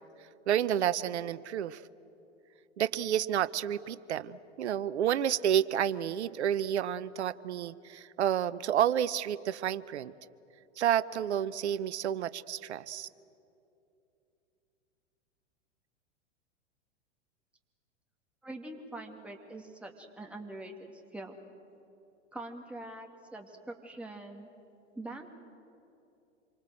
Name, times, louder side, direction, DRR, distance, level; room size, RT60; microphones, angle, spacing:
voice 1, 0.5-1.8 2.8-10.1 10.8-13.1, right 10 dB, 65° right, 17 dB, 0.9 m, -30 dB
voice 2, 18.4-21.4 22.3-24.5 25.0-25.3, right 2 dB, 5° right, 2 dB, 2.2 m, -44 dB
27.0 x 24.5 x 7.8 m, 2.8 s
figure-of-eight pair, 100°, 36 cm